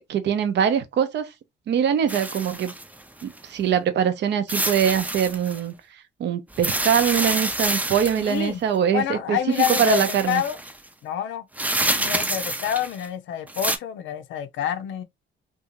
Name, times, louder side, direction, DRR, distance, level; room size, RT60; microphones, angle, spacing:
voice 1, 0.0-1.3 1.7-2.7 3.2-5.7 6.2-9.4 9.7-10.4, right 8 dB, 60° right, 0.6 m, -23 dB
sound 1, 2.1-3.4 4.5-5.6 6.5-8.5 9.5-10.8 11.6-13.1 13.5-13.8, right 1 dB, 10° right, 0.4 m, -27 dB
voice 2, 8.2-8.6 8.9-10.6 11.0-11.5 12.0-15.0, left 9 dB, 75° left, 0.5 m, -27 dB
2.6 x 2.3 x 2.9 m
cardioid pair, 90°, 20 cm